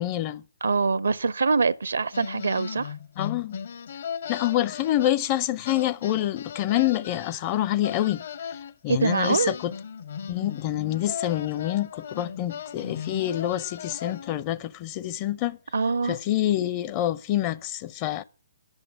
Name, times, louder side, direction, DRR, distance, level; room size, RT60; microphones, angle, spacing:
voice 1, 0.0-0.4 3.2-3.6 4.3-8.2 8.8-9.7 10.3-15.6 16.0-18.2, left 13 dB, 30° left, 0.5 m, -26 dB
voice 2, 0.6-2.9 8.9-9.5 15.7-16.2, right 4 dB, 65° right, 0.6 m, -24 dB
sound 1, 2.1-5.4 5.6-8.7 9.2-14.5, left 7 dB, 55° left, 0.8 m, -37 dB
10.5 x 7.0 x 9.1 m
figure-of-eight pair, 125°, 0 cm